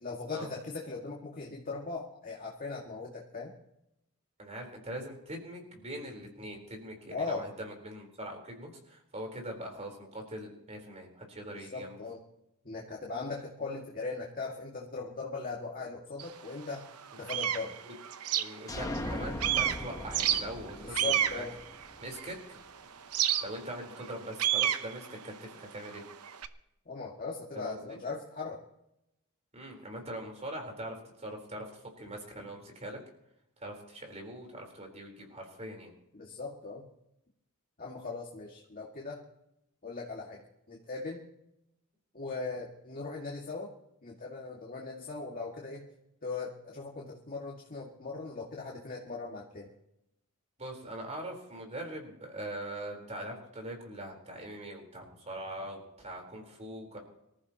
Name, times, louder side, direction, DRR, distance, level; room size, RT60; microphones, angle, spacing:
voice 1, 0.0-3.5 7.1-7.5 11.5-12.2 12.6-16.9 17.2-17.7 20.8-21.5 26.9-28.6 36.1-36.9 37.8-39.2 39.8-40.4 40.7-41.2 42.1-43.7 44.0-45.9 46.2-49.7, left 4 dB, 40° left, -2 dB, 2.0 m, -39 dB
voice 2, 4.4-12.0 17.8-17.9 18.4-21.4 22.0-22.6 23.4-25.3 25.6-26.0 27.5-28.0 29.5-33.0 33.6-35.9 50.6-57.0, right 1 dB, 30° right, 2 dB, 4.0 m, -42 dB
sound 1, 16.2-16.3 16.8-19.1 19.4-22.5 23.1-26.5, right 10 dB, 90° right, 0.8 m, -31 dB
sound 2, 18.7-22.4, left 1 dB, 15° left, 1.1 m, -39 dB
25.0 x 14.5 x 3.0 m, 0.82 s
head